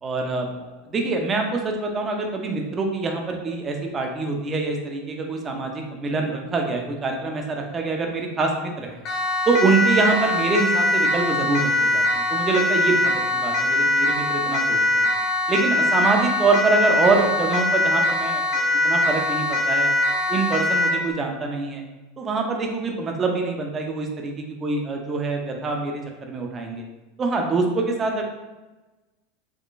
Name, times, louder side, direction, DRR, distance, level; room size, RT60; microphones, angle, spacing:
voice 1, 0.0-9.0 9.5-15.1 15.5-19.9 20.3-21.8 22.2-26.8 27.2-28.2, right 3 dB, 20° right, 2 dB, 0.5 m, -25 dB
Siren, 9.1-21.0, left 1 dB, 35° left, 0.8 m, -22 dB
3.7 x 3.1 x 2.5 m, 1.1 s
supercardioid pair, 155°, 0 cm